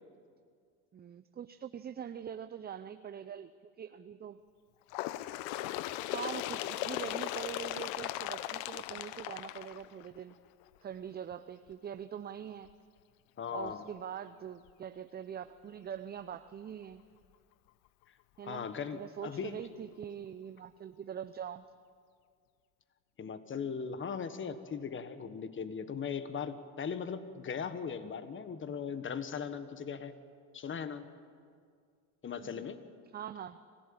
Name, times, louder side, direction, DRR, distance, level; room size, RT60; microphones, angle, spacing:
voice 1, 0.9-4.4 6.1-10.4 10.8-12.7 13.5-17.0 18.4-18.7 18.9-21.6 32.4-32.7 33.1-33.6, right 8 dB, 25° right, 11 dB, 0.6 m, -43 dB
Bird, 4.9-10.3 11.2-11.3 11.7-11.8 12.7-12.8 13.7-13.8 14.7-14.8, left 15 dB, 70° left, 0.9 m, -38 dB
voice 2, 13.4-13.9 18.4-19.6 23.2-30.1 30.5-31.1 32.2-32.8, left 6 dB, 30° left, 11 dB, 1.5 m, -38 dB
25.5 x 16.0 x 8.9 m, 2.2 s
supercardioid pair, 95°, 40 cm